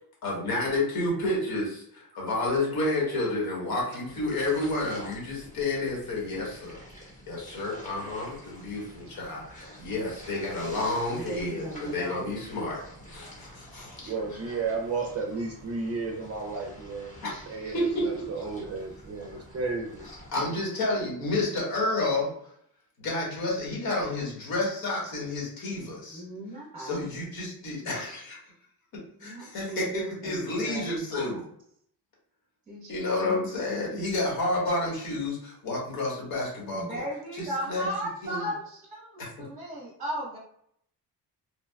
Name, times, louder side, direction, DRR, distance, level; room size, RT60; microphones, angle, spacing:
voice 1, 0.2-6.8 7.3-12.8 13.1-14.1 17.2-17.4 17.7-18.0 20.3-22.3 23.0-26.2 26.8-28.4 28.9-31.4 32.9-37.0 37.4-37.9 38.2-38.5 39.2-39.3, left 2 dB, 60° left, -4 dB, 1.4 m, -30 dB
sound 1, 4.0-20.3, equal, 20° left, 1.0 m, -48 dB
voice 2, 11.1-12.4 26.1-27.0 27.8-28.0 29.2-30.8 31.1-31.3 32.7-32.9 36.7-40.4, right 1 dB, 20° right, -4 dB, 0.9 m, -36 dB
voice 3, 14.1-20.1, right 4 dB, 40° right, 1 dB, 0.5 m, -33 dB
3.3 x 2.2 x 2.2 m, 0.68 s
cardioid pair, 120°, 41 cm